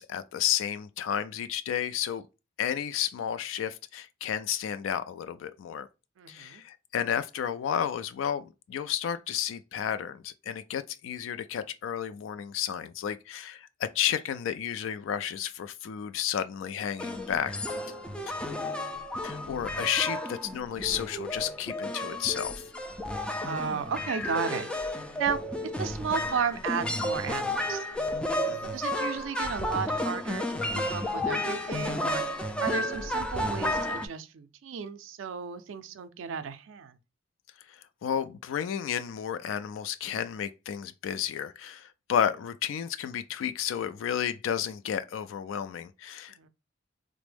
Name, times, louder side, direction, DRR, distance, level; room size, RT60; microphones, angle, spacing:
voice 1, 0.0-2.2 2.6-5.9 6.3-17.5 19.2-22.5 28.5-28.7 37.7-46.5, left 9 dB, 90° left, 0.3 m, -32 dB
voice 2, 6.2-6.6 23.4-24.7 25.2-25.4 25.8-27.9 28.7-37.0 46.3-46.5, right 6 dB, 80° right, 0.4 m, -34 dB
sound 1, 17.0-34.1, left 1 dB, 5° left, 0.3 m, -32 dB
3.3 x 2.0 x 3.3 m
head